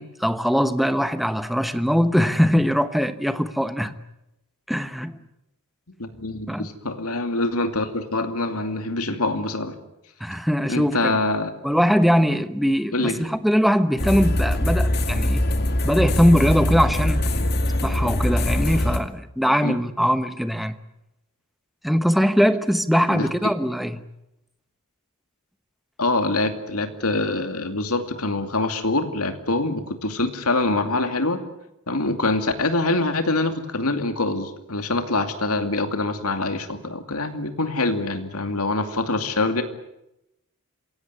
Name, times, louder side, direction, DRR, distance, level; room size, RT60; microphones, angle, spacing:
voice 1, 0.0-3.9 4.7-5.2 6.5-6.7 10.2-11.2 11.6-15.4 15.8-17.2 17.8-20.8 21.8-24.0, equal, ahead, 1.0 m, -21 dB
voice 2, 6.0-9.7 10.7-11.5 12.9-13.2 19.6-19.8 23.1-23.3 26.0-31.4 31.9-39.6, left 2 dB, 75° left, 2.6 m, -24 dB
sound 1, 14.0-19.0, left 1 dB, 45° left, 2.3 m, -22 dB
27.0 x 17.0 x 9.7 m
head